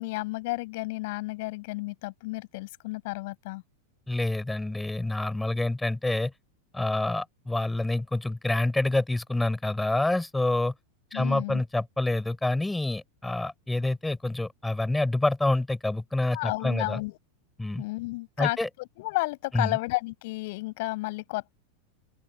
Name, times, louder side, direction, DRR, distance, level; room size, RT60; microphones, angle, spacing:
voice 1, 0.0-3.6 11.1-11.6 16.3-17.2 17.8-21.5, left 22 dB, 50° left, 6.5 m, -32 dB
voice 2, 4.1-6.3 6.7-10.7 11.1-17.0 17.6-17.8 18.4-18.7 19.5-19.7, left 2 dB, 5° left, 4.3 m, -27 dB
open air
figure-of-eight pair, 90°, 0 cm